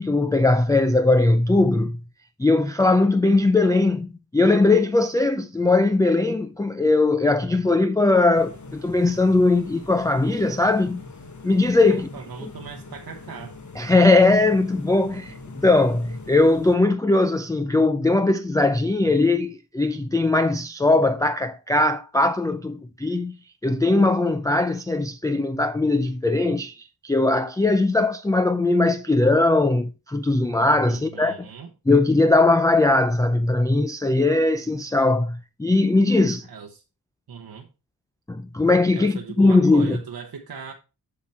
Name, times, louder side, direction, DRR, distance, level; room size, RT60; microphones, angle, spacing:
voice 1, 0.0-2.0 2.4-11.0 11.4-12.1 12.4-12.5 13.8-23.3 23.6-31.4 31.9-36.5 38.3-40.0, left 2 dB, 10° left, 0.4 m, -20 dB
sound 1, 8.3-16.8, left 3 dB, 45° left, 1.2 m, -42 dB
voice 2, 11.9-13.6 30.9-31.7 36.4-36.8 37.3-37.7 38.9-40.7, right 6 dB, 70° right, 0.9 m, -38 dB
7.6 x 5.9 x 4.3 m
wide cardioid pair, 110°, 39 cm